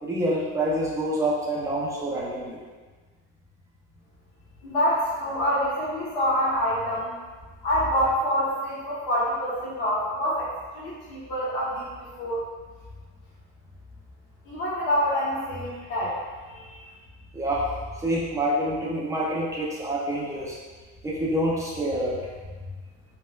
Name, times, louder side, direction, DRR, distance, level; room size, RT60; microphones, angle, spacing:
voice 1, 0.0-2.6 17.3-17.7 18.0-20.6 21.0-22.2, right 1 dB, 10° right, -5 dB, 0.4 m, -27 dB
voice 2, 4.6-7.1 7.6-12.5 14.4-16.2 16.5-17.0, equal, 85° left, -7 dB, 1.1 m, -26 dB
3.2 x 2.1 x 2.2 m, 1.4 s
cardioid pair, 140°, 30 cm